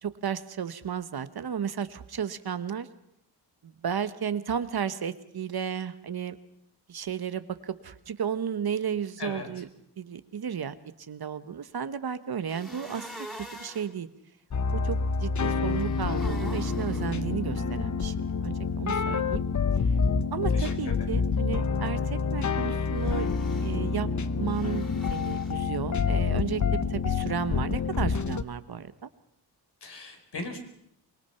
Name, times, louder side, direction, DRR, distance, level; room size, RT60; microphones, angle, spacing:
voice 1, 0.0-2.9 3.6-6.4 6.9-9.7 10.0-13.1 13.4-14.1 14.7-18.1 18.4-19.4 20.3-23.3 23.6-24.1 24.4-29.1, right 7 dB, 60° right, 12 dB, 1.2 m, -33 dB
sound 1, 12.5-13.9 15.7-17.1 23.0-23.7 24.5-25.5, equal, ahead, 3.3 m, -44 dB
sound 2, 14.5-28.4, left 5 dB, 45° left, 0.9 m, -27 dB
voice 2, 20.5-21.2 29.8-30.6, left 3 dB, 70° left, 4 dB, 4.7 m, -38 dB
24.5 x 21.0 x 5.8 m, 0.75 s
wide cardioid pair, 85°, 42 cm